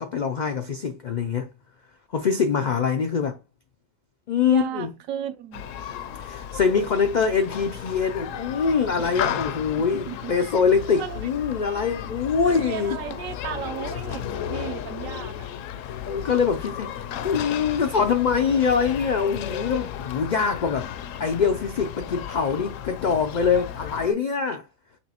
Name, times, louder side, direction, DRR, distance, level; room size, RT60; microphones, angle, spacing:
voice 1, 0.0-1.5 2.1-3.4 4.3-4.9 6.2-13.0 16.1-17.0 17.2-20.9 21.2-24.6, left 6 dB, 85° left, 0.4 m, -24 dB
voice 2, 4.5-5.7 8.3-8.4 9.8-10.3 11.0-11.2 12.4-15.5, right 9 dB, 75° right, 1.0 m, -35 dB
Human group actions, 5.5-24.1, left 9 dB, 70° left, 0.9 m, -34 dB
6.0 x 3.0 x 2.9 m
omnidirectional pair, 1.4 m